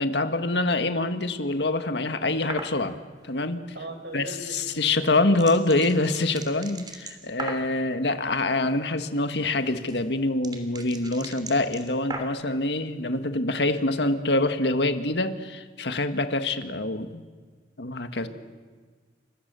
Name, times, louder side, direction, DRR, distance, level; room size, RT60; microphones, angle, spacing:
voice 1, 0.0-3.0 3.2-3.6 4.1-17.3 17.8-18.3, left 2 dB, 75° left, 8 dB, 1.8 m, -25 dB
sound 1, 2.5-2.8 4.7-7.8 9.3-12.5, right 2 dB, 25° right, 3.0 m, -38 dB
voice 2, 3.7-5.0, right 2 dB, 80° right, 3 dB, 6.8 m, -39 dB
29.5 x 24.5 x 7.0 m, 1.5 s
head